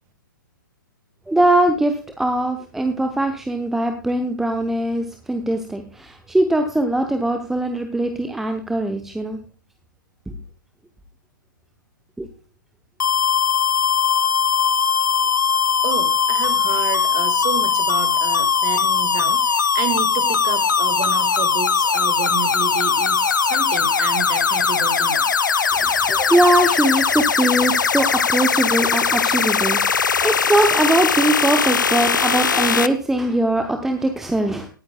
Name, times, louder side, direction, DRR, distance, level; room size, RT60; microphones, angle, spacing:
voice 1, 1.3-9.4 10.3-10.4 12.2-12.3 25.7-29.8 30.2-34.7, right 1 dB, 5° right, 6 dB, 0.8 m, -21 dB
sound 1, 13.0-32.9, left 6 dB, 65° left, 0.7 m, -19 dB
voice 2, 15.8-25.3, right 9 dB, 25° right, 11 dB, 1.6 m, -30 dB
19.0 x 9.5 x 2.2 m, 0.34 s
figure-of-eight pair, 120°, 11 cm